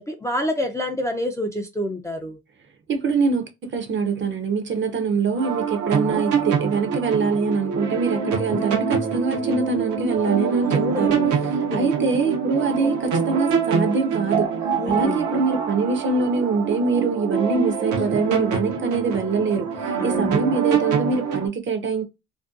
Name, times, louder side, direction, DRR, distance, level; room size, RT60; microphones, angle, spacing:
voice 1, 0.0-2.4 10.7-11.3 11.7-11.9 14.8-15.3 20.0-20.5, left 1 dB, 10° left, 0.4 m, -28 dB
voice 2, 2.9-11.2 11.5-14.5 14.8-22.0, right 4 dB, 40° right, 0.5 m, -24 dB
sound 1, 5.3-21.5, right 6 dB, 80° right, 0.7 m, -25 dB
2.5 x 2.1 x 2.4 m
cardioid pair, 90°, 30 cm